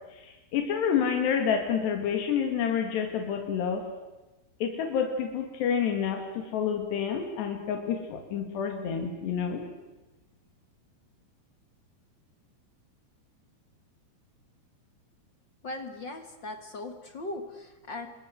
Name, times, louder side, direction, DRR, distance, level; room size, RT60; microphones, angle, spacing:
voice 1, 0.1-3.8 4.6-9.6, left 7 dB, 90° left, 5 dB, 4.3 m, -29 dB
voice 2, 15.6-18.1, left 2 dB, 45° left, 7 dB, 1.5 m, -39 dB
29.0 x 25.0 x 7.7 m, 1.1 s
omnidirectional pair, 4.7 m